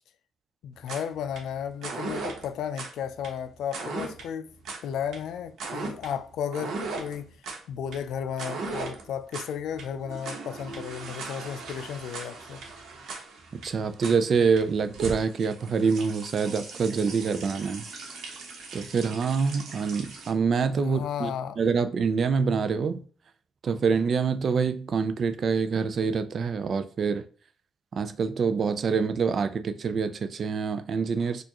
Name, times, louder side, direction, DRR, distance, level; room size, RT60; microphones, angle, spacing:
voice 1, 0.6-4.5 4.8-7.3 7.7-12.6 20.8-21.6, left 8 dB, 80° left, 0.3 m, -34 dB
sound 1, 0.8-20.3, right 3 dB, 70° right, 1.0 m, -38 dB
voice 2, 13.6-17.9 18.7-21.3 21.6-23.0 23.6-27.2 27.9-31.4, right 5 dB, 50° right, 0.4 m, -26 dB
4.5 x 2.5 x 2.9 m
cardioid pair, 90°, 0 cm